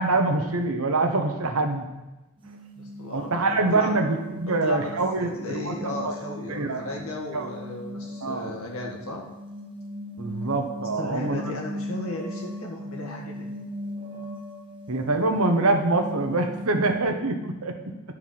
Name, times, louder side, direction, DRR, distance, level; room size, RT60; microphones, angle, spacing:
voice 1, 0.0-1.9 3.1-6.2 6.5-7.0 7.3-7.5 8.2-8.6 10.2-11.4 14.9-17.9, right 2 dB, 80° right, 5 dB, 1.0 m, -25 dB
sound 1, 2.4-17.0, left 1 dB, 20° right, 0.9 m, -38 dB
voice 2, 2.8-3.3 3.7-3.9 4.5-9.2 11.0-13.5, left 1 dB, 75° left, -1 dB, 1.8 m, -35 dB
11.0 x 4.6 x 5.9 m, 1.0 s
head